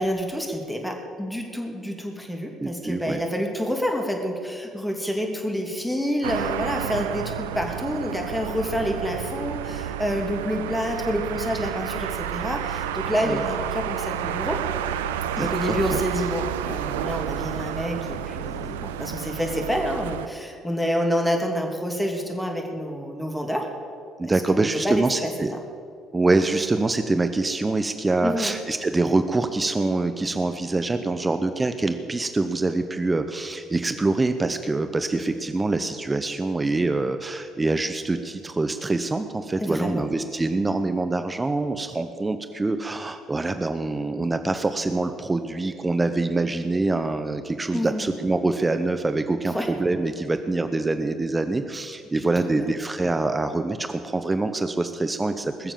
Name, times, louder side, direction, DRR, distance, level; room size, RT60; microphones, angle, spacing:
voice 1, 0.0-14.6 15.4-23.7 24.2-25.3 28.2-28.6 39.6-40.0 47.7-48.0 49.5-49.7 52.1-52.7, equal, 5° left, 2 dB, 3.0 m, -28 dB
voice 2, 2.6-3.2 13.2-13.4 15.4-16.0 24.2-25.5 26.1-55.7, right 2 dB, 20° right, 9 dB, 0.8 m, -25 dB
sound 1, 6.2-20.3, right 10 dB, 80° right, 0.4 m, -30 dB
21.0 x 7.1 x 7.1 m, 2.4 s
hypercardioid pair, 55°, 0 cm